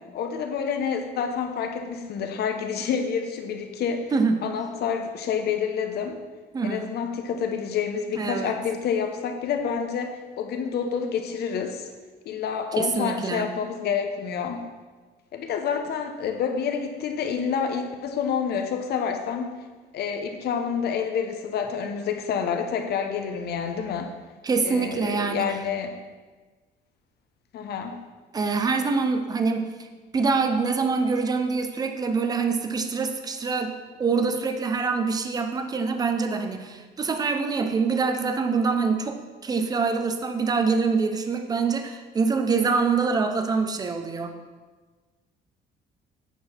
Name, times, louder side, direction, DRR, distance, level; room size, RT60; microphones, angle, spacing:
voice 1, 0.1-4.1 4.4-6.2 6.6-11.9 12.2-14.6 15.3-19.5 19.9-24.1 24.6-25.9 27.5-28.0, left 7 dB, 60° left, 5 dB, 1.0 m, -28 dB
voice 2, 4.1-4.5 6.5-6.9 8.1-8.5 12.8-13.5 24.4-25.6 28.3-29.7 30.1-44.3, right 4 dB, 20° right, 7 dB, 0.6 m, -25 dB
9.2 x 4.6 x 5.8 m, 1.3 s
cardioid pair, 160°, 19 cm